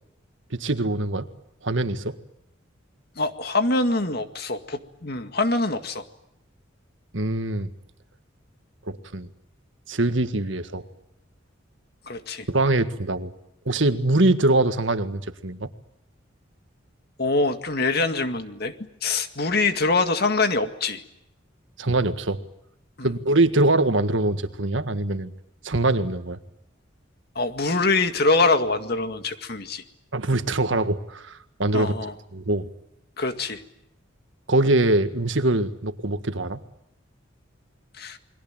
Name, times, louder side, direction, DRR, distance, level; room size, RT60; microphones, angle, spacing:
voice 1, 0.5-1.3 1.6-2.2 7.1-7.7 8.9-9.3 9.9-10.9 12.5-13.3 13.7-15.7 21.8-22.4 23.0-25.3 25.6-26.4 30.1-31.9 32.3-32.7 34.5-36.6, right 2 dB, 70° right, 10 dB, 1.7 m, -23 dB
voice 2, 3.2-6.0 12.1-12.5 17.2-18.7 19.0-21.0 23.0-23.1 27.4-29.8 31.7-32.1 33.2-33.6 38.0-38.2, left 3 dB, 50° left, 8 dB, 2.0 m, -24 dB
29.0 x 22.5 x 8.9 m, 0.80 s
head